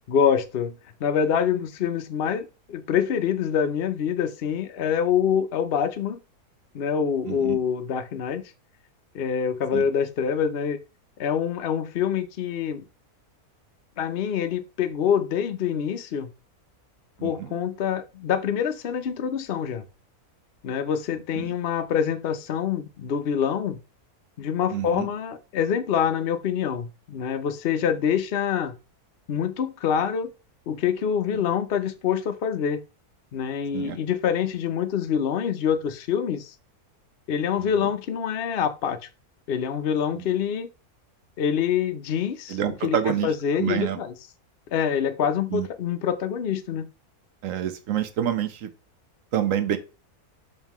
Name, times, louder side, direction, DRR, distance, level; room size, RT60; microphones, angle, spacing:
voice 1, 0.1-0.7 1.0-6.2 6.7-8.4 9.1-10.8 11.2-12.8 14.0-16.3 17.2-19.8 20.6-23.8 24.4-28.7 29.3-30.3 30.7-32.8 33.3-36.5 37.3-39.0 39.5-40.7 41.4-42.6 42.8-43.0 43.2-44.1 44.7-46.9, left 8 dB, 50° left, 0.8 m, -25 dB
voice 2, 7.3-7.6 9.7-9.8 17.2-17.5 21.4-21.5 24.7-25.1 33.7-34.0 37.6-37.7 40.1-40.3 42.5-43.3 43.5-44.0 45.5-45.7 47.4-48.7 49.3-49.8, right 10 dB, 60° right, 1.2 m, -27 dB
6.5 x 5.4 x 3.0 m
omnidirectional pair, 1.6 m